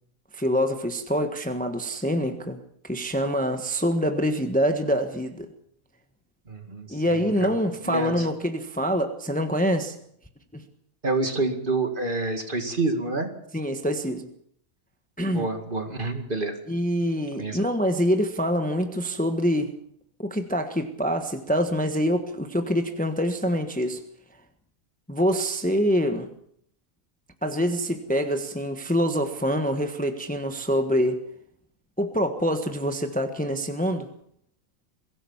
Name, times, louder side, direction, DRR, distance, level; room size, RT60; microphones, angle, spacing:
voice 1, 0.3-2.6 2.8-5.5 6.9-10.0 10.5-10.6 13.5-14.3 15.2-15.5 16.7-19.7 20.2-24.0 25.1-26.3 27.4-31.2 32.0-34.1, equal, 5° left, 7 dB, 1.3 m, -25 dB
voice 2, 6.5-7.5 7.8-8.3 11.0-13.3 15.3-16.6 17.4-17.6, right 2 dB, 35° right, 6 dB, 2.3 m, -28 dB
23.0 x 16.5 x 7.2 m, 0.67 s
omnidirectional pair, 1.5 m